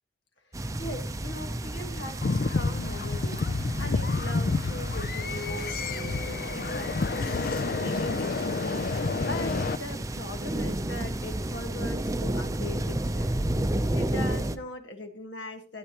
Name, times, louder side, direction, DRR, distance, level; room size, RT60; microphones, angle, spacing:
voice 1, 0.5-15.8, left 1 dB, 70° left, 7 dB, 1.6 m, -41 dB
sound 1, 0.5-14.6, right 1 dB, 15° right, 0.6 m, -32 dB
sound 2, 2.2-9.8, left 3 dB, 50° left, 0.5 m, -29 dB
15.5 x 8.6 x 3.0 m, 0.40 s
head